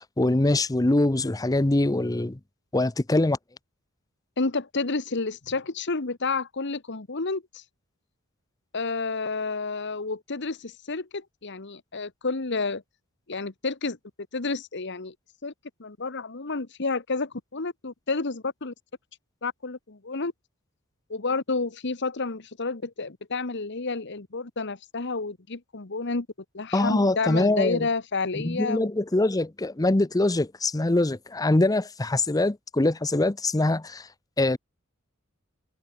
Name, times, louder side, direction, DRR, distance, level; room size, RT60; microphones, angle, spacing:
voice 1, 0.0-2.4 2.7-3.4 26.7-27.9 28.4-34.1 34.4-34.6, left 2 dB, 15° left, 0.7 m, -23 dB
voice 2, 4.4-7.6 8.7-12.8 13.3-14.0 14.3-15.1 15.4-15.5 15.8-18.7 19.4-20.3 21.1-26.3 26.5-28.9, left 3 dB, 55° left, 1.3 m, -30 dB
head